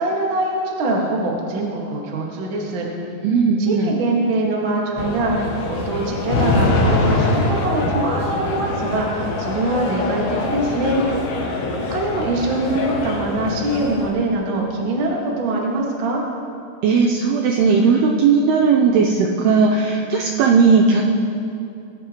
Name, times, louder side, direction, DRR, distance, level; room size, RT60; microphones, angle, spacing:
voice 1, 0.0-2.9 3.6-11.0 11.9-16.2, right 2 dB, 70° right, -2 dB, 1.1 m, -23 dB
voice 2, 3.2-3.9 16.8-21.0, right 5 dB, 85° right, 0 dB, 2.3 m, -16 dB
sound 1, 5.0-14.1, left 2 dB, 80° left, 3.9 m, -23 dB
21.5 x 11.5 x 3.1 m, 2.6 s
omnidirectional pair, 5.4 m